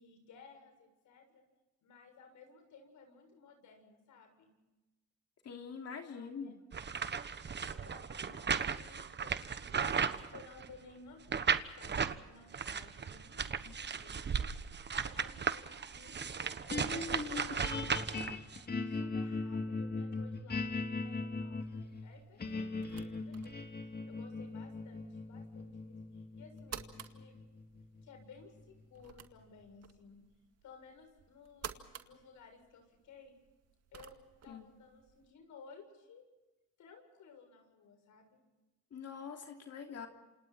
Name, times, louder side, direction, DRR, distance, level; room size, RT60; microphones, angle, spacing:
voice 1, 0.0-1.4 1.8-4.6 6.1-6.7 7.6-9.8 10.3-14.7 15.0-18.5 18.9-20.7 21.0-27.4 28.0-30.2 30.6-33.4 33.9-36.2 36.8-38.4, left 4 dB, 75° left, 5 dB, 7.4 m, -58 dB
voice 2, 5.4-6.5 13.7-13.8 34.5-34.6 38.9-40.1, left 6 dB, 55° left, 3 dB, 3.1 m, -44 dB
sound 1, 6.7-10.8 11.3-12.2 12.5-18.6, right 6 dB, 35° right, 1.3 m, -36 dB
sound 2, 16.7-29.0, left 3 dB, 30° left, 2.5 m, -39 dB
sound 3, 21.7-35.3, right 8 dB, 55° right, 2.1 m, -54 dB
28.5 x 27.5 x 4.3 m, 1.1 s
cardioid pair, 90°, 30 cm